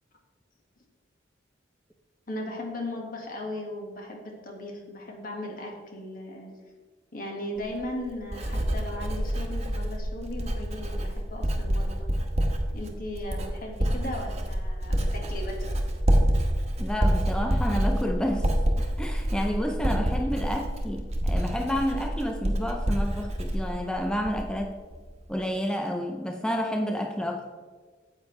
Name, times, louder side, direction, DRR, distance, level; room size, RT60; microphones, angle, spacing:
voice 1, 2.3-6.5 7.1-12.1 12.7-15.7, left 1 dB, 50° left, 1 dB, 1.8 m, -37 dB
Writing, 7.6-24.6 24.9-25.4, equal, 35° right, 1.2 m, -27 dB
voice 2, 16.8-24.8 25.3-27.5, equal, 5° left, 3 dB, 0.4 m, -30 dB
9.7 x 7.9 x 3.3 m, 1.5 s
head